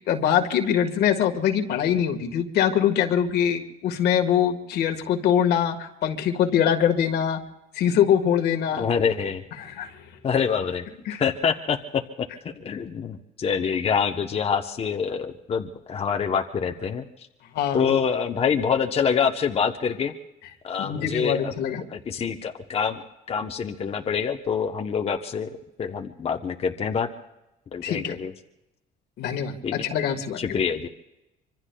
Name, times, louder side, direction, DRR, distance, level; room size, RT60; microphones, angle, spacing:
voice 1, 0.1-7.4 7.7-8.9 9.6-10.0 11.0-11.2 17.5-17.9 20.8-21.8 27.8-28.2 29.2-30.4, left 9 dB, 75° left, 5 dB, 1.5 m, -23 dB
voice 2, 8.8-9.4 10.2-10.8 11.2-17.0 17.7-20.1 20.6-21.5 21.9-23.0 23.3-25.5 25.8-27.1 27.7-28.3 29.6-29.8 30.4-30.9, left 6 dB, 35° left, 4 dB, 0.8 m, -26 dB
25.5 x 24.5 x 2.3 m, 0.95 s
cardioid pair, 110°, 17 cm